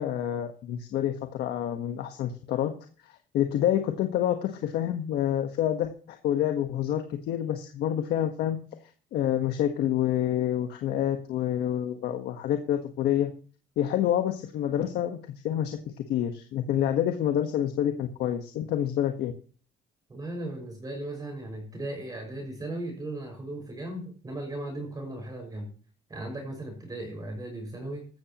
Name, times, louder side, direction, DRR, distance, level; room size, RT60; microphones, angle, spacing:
voice 1, 0.0-2.7 3.1-8.6 9.1-13.3 13.8-19.3, left 11 dB, 75° left, 5 dB, 1.4 m, -28 dB
voice 2, 20.1-25.7 26.1-28.1, right 1 dB, 20° right, 2 dB, 5.8 m, -37 dB
16.0 x 13.5 x 3.0 m, 0.40 s
cardioid pair, 110°, 17 cm